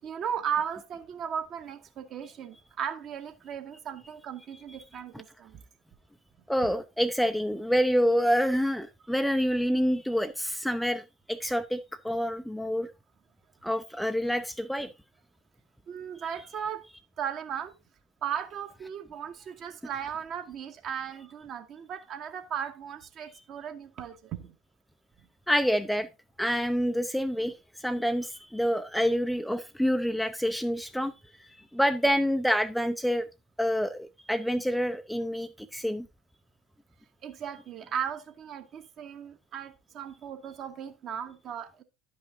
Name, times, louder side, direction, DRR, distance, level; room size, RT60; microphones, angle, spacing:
voice 1, 0.0-5.6 6.6-6.7 15.9-16.8 17.2-17.7 18.2-24.5 37.2-41.8, right 8 dB, 40° right, 1.2 m, -36 dB
voice 2, 6.5-11.0 11.3-11.8 12.0-12.9 13.6-14.9 16.2-16.3 25.5-26.1 26.4-27.5 27.8-31.1 31.4-33.3 33.6-36.1, equal, ahead, 0.5 m, -27 dB
11.0 x 5.6 x 3.7 m
figure-of-eight pair, 70°, 0 cm